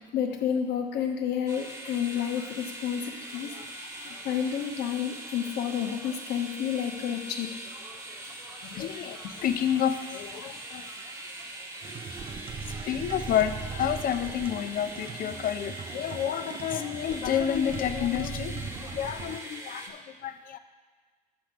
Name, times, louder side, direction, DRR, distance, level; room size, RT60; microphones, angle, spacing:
voice 1, 0.1-3.5 4.2-7.5 8.6-8.9, left 8 dB, 80° left, 4 dB, 1.0 m, -30 dB
sound 1, 1.5-19.9, right 1 dB, 15° right, 1.0 m, -42 dB
voice 2, 8.7-10.9 12.8-20.6, left 9 dB, 55° left, 9 dB, 0.6 m, -30 dB
sound 2, 11.8-19.4, right 5 dB, 30° right, 0.5 m, -39 dB
7.3 x 5.0 x 5.9 m, 1.5 s
cardioid pair, 110°, 17 cm